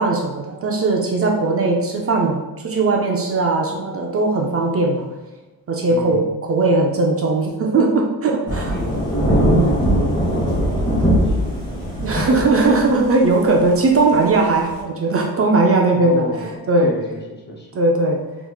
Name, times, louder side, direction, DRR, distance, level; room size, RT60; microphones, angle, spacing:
voice 1, 0.0-5.0 5.7-8.8 9.4-9.7 12.0-16.3 16.7-16.9 17.7-18.2, right 3 dB, 35° right, 0 dB, 0.4 m, -18 dB
voice 2, 5.9-6.3 8.7-11.8 12.1-12.3 15.9-17.7, equal, 30° left, -1 dB, 0.4 m, -30 dB
Thunder / Rain, 8.5-14.8, equal, 10° left, 0.9 m, -21 dB
3.5 x 3.0 x 2.3 m, 1.2 s
wide cardioid pair, 150°, 40 cm